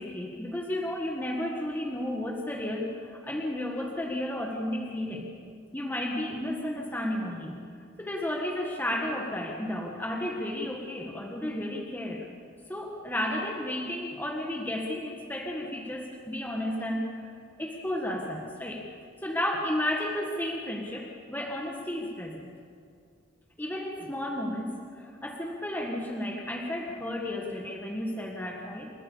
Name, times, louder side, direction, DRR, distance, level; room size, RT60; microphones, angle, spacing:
voice 1, 0.0-5.3 5.7-7.6 8.0-12.3 12.7-17.3 17.6-18.9 19.2-22.5 23.6-28.9, left 1 dB, 10° left, -1 dB, 1.7 m, -33 dB
29.5 x 14.0 x 7.0 m, 2.3 s
head